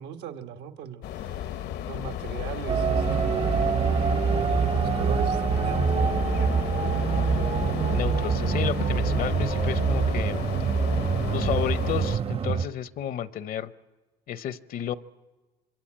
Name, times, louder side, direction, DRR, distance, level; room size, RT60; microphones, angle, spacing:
voice 1, 0.0-3.5 4.3-6.2, right 8 dB, 85° right, 6 dB, 1.5 m, -39 dB
sound 1, 1.0-12.2, left 10 dB, 80° left, 1.0 m, -33 dB
sound 2, 2.7-12.7, right 6 dB, 35° right, 0.8 m, -25 dB
voice 2, 7.9-10.4 11.3-13.7 14.3-15.0, left 10 dB, 60° left, 15 dB, 0.7 m, -32 dB
26.5 x 22.5 x 8.8 m, 1.2 s
cardioid pair, 110°, 17 cm